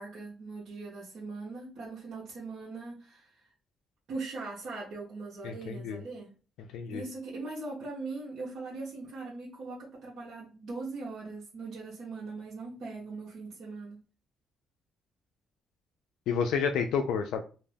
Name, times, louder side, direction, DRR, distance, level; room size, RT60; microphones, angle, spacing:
voice 1, 0.0-3.5 4.1-6.3 6.9-14.0, right 3 dB, 65° right, 0.8 m, -40 dB
voice 2, 5.4-6.0 6.6-7.0 16.3-17.4, left 6 dB, 85° left, 0.3 m, -30 dB
2.3 x 2.2 x 3.3 m
cardioid pair, 90°, 0 cm